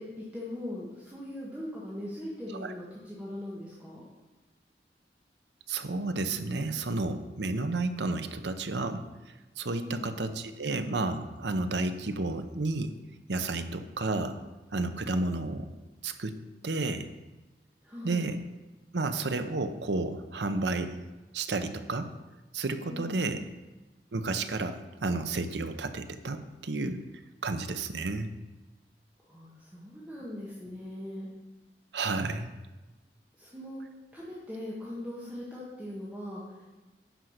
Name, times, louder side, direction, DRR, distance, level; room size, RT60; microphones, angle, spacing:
voice 1, 0.0-4.0 9.7-10.2 17.8-18.3 22.9-23.4 29.2-31.3 33.4-33.8 34.1-36.7, left 1 dB, 10° right, -7 dB, 1.6 m, -40 dB
voice 2, 5.7-9.0 9.6-12.9 13.3-14.4 14.7-15.7 16.0-16.4 16.6-17.1 18.0-18.4 18.9-21.0 21.3-22.1 22.5-23.4 24.1-27.0 27.4-28.3 31.9-32.5, right 3 dB, 75° right, 9 dB, 0.8 m, -31 dB
10.0 x 5.3 x 6.5 m, 1.1 s
head